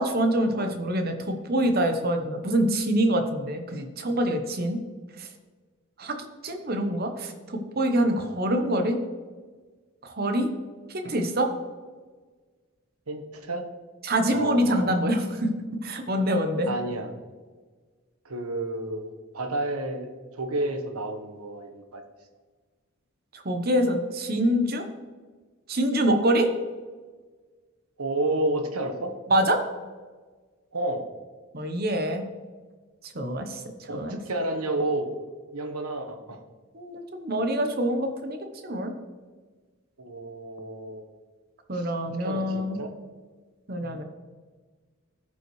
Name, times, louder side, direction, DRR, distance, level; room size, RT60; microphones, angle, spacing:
voice 1, 0.0-4.8 5.2-5.3 6.0-6.2 6.4-9.0 10.0-10.5 10.9-11.5 14.0-15.5 15.8-16.7 23.3-24.8 25.7-26.5 29.3-29.6 31.5-32.2 33.1-34.2 36.7-38.4 38.6-38.9 41.7-42.8 43.7-44.0, right 1 dB, 45° right, 6 dB, 0.9 m, -25 dB
voice 2, 13.1-13.6 14.3-15.1 16.6-17.1 18.2-20.1 20.3-22.0 28.0-29.1 30.7-31.0 33.9-35.1 35.5-36.4 40.0-41.1 41.7-41.9 42.2-42.9 43.8-44.0, right 2 dB, 85° right, 5 dB, 1.2 m, -31 dB
14.5 x 5.5 x 3.2 m, 1.4 s
head